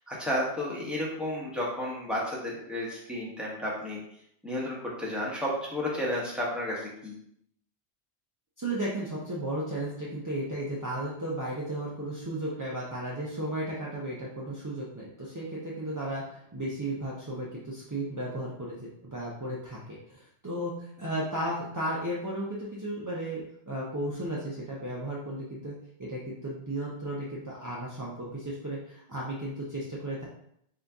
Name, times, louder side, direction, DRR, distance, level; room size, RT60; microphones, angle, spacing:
voice 1, 0.1-4.0 4.4-7.2, left 1 dB, ahead, -6 dB, 1.0 m, -32 dB
voice 2, 8.6-25.7 26.0-30.2, right 1 dB, 30° right, -6 dB, 0.4 m, -34 dB
3.8 x 2.7 x 3.5 m, 0.72 s
omnidirectional pair, 1.1 m